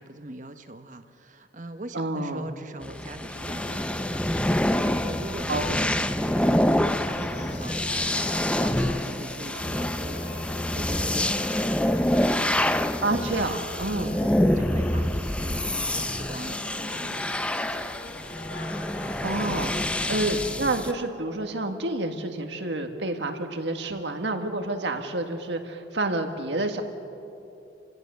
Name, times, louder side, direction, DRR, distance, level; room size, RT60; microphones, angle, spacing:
voice 1, 0.0-11.7 12.3-13.5 14.1-17.9, right 2 dB, 45° right, 8 dB, 1.1 m, -42 dB
voice 2, 1.9-2.5 5.5-5.8 13.0-14.2 19.2-19.7 20.1-26.8, right 2 dB, 75° right, 5 dB, 1.8 m, -29 dB
sound 1, 2.8-20.9, left 1 dB, 5° left, 0.5 m, -26 dB
sound 2, 3.3-20.6, left 2 dB, 65° left, 1.6 m, -43 dB
30.0 x 16.5 x 6.9 m, 2.8 s
head